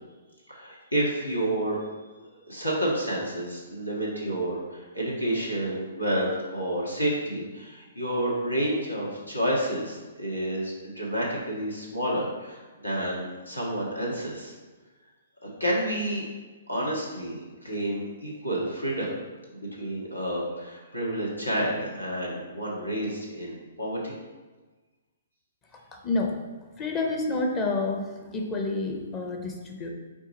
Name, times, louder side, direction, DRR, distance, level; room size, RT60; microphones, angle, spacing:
voice 1, 0.5-1.8 2.2-14.5 15.4-16.2 16.7-19.1 19.5-24.2, right 1 dB, 90° left, -4 dB, 1.2 m, -30 dB
voice 2, 25.9-26.3 26.8-28.1 28.3-29.9, left 3 dB, 20° left, 1 dB, 0.6 m, -28 dB
4.7 x 2.6 x 3.9 m, 1.3 s
figure-of-eight pair, 120°, 0 cm